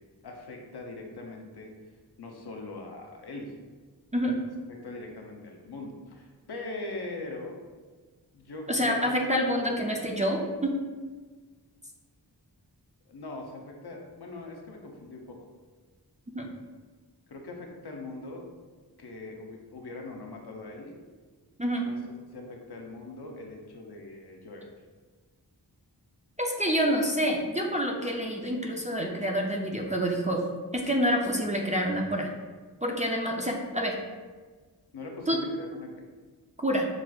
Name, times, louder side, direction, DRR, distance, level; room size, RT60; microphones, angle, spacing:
voice 1, 0.2-1.7 2.2-3.5 4.7-7.6 8.3-9.9 13.1-15.4 17.3-18.5 19.0-21.0 21.8-22.0 22.3-24.7 34.9-36.1, left 2 dB, 65° left, 1 dB, 0.6 m, -41 dB
voice 2, 8.7-10.7 16.3-16.5 21.6-21.8 26.4-30.4 30.7-32.3 32.8-34.0 35.3-35.4 36.6-36.9, equal, 20° right, 0 dB, 0.4 m, -27 dB
6.0 x 2.4 x 2.3 m, 1.4 s
wide cardioid pair, 75°, 42 cm